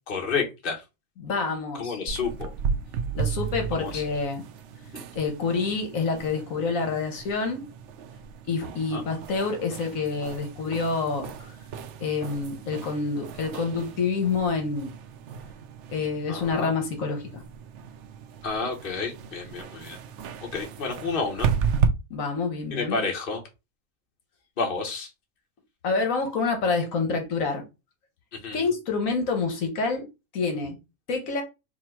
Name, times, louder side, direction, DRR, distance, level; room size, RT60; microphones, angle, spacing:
voice 1, 0.1-0.8 1.8-2.5 3.7-4.0 4.9-5.0 8.9-9.0 16.3-16.7 18.4-20.0 20.5-21.5 22.7-23.4 24.6-25.1 28.4-28.6, left 4 dB, 45° left, 1.2 m, -30 dB
voice 2, 1.2-2.0 3.1-4.4 5.1-7.6 8.5-11.3 12.0-14.9 15.9-17.4 22.1-23.0 25.8-27.6 28.5-30.0 30.3-30.8 31.1-31.4, left 4 dB, 75° left, 1.4 m, -27 dB
sound 1, 2.1-21.9, right 7 dB, 65° right, 0.8 m, -34 dB
4.4 x 2.3 x 4.4 m
omnidirectional pair, 1.4 m